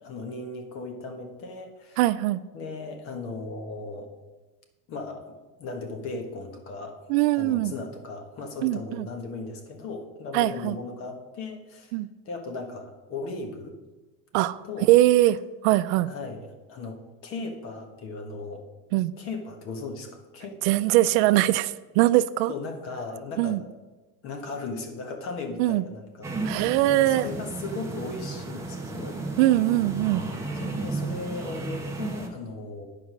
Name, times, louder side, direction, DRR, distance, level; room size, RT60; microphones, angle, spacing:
voice 1, 0.0-2.0 2.5-4.1 4.9-7.0 7.3-12.0 12.2-13.7 14.6-14.9 16.0-18.7 19.2-20.6 22.5-23.6 24.2-26.7 26.9-29.2 30.6-32.9, left 3 dB, 45° left, 4 dB, 1.3 m, -37 dB
voice 2, 2.0-2.4 7.1-7.7 8.6-9.1 10.3-10.8 11.9-12.1 14.3-14.6 14.9-15.4 15.6-16.1 18.9-19.1 20.6-22.5 23.4-23.6 25.6-25.8 26.4-27.3 29.4-30.2, right 16 dB, 80° right, 13 dB, 0.5 m, -21 dB
sound 1, 26.2-32.3, right 2 dB, 10° right, 1.0 m, -33 dB
9.4 x 5.0 x 6.1 m, 1.2 s
cardioid pair, 165°, 31 cm